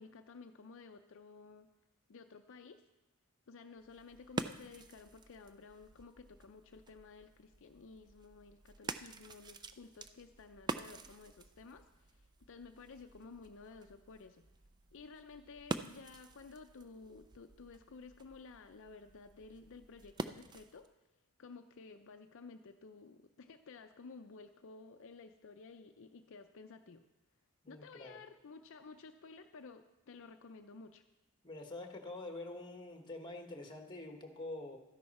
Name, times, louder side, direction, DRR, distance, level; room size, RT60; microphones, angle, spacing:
voice 1, 0.0-1.7 2.1-2.8 3.5-14.4 14.9-20.9 21.4-27.0 27.7-31.0, left 4 dB, 60° left, 6 dB, 0.5 m, -54 dB
sound 1, 3.8-20.9, right 3 dB, 20° right, 0.4 m, -47 dB
voice 2, 27.6-28.2 31.4-34.8, left 2 dB, 20° left, 4 dB, 1.3 m, -46 dB
12.5 x 10.5 x 4.2 m, 0.97 s
head